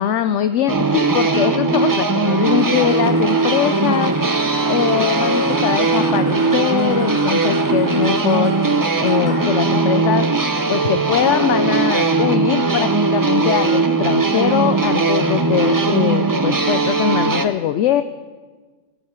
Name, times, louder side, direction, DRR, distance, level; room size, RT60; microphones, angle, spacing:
voice 1, 0.0-4.1 4.7-8.5 9.0-10.3 10.7-18.0, left 10 dB, 70° left, 11 dB, 0.8 m, -21 dB
sound 1, 0.7-17.5, right 3 dB, 20° right, 0.5 m, -19 dB
sound 2, 2.2-12.8, left 1 dB, 35° left, 2.7 m, -36 dB
14.5 x 8.3 x 8.0 m, 1.4 s
omnidirectional pair, 1.4 m